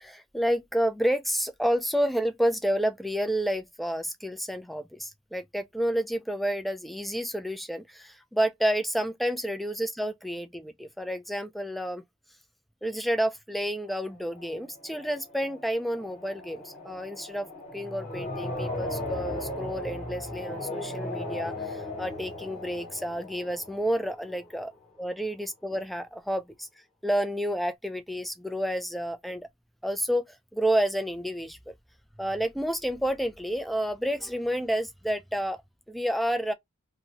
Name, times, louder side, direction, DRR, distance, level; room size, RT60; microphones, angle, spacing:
voice 1, 0.0-12.0 12.8-17.5 17.7-24.7 25.0-26.7 27.0-29.5 29.8-31.7 32.2-35.6 35.9-36.5, equal, ahead, 0.3 m, -30 dB
sound 1, 13.9-24.7, left 1 dB, 35° left, 1.1 m, -37 dB
2.7 x 2.6 x 2.9 m
head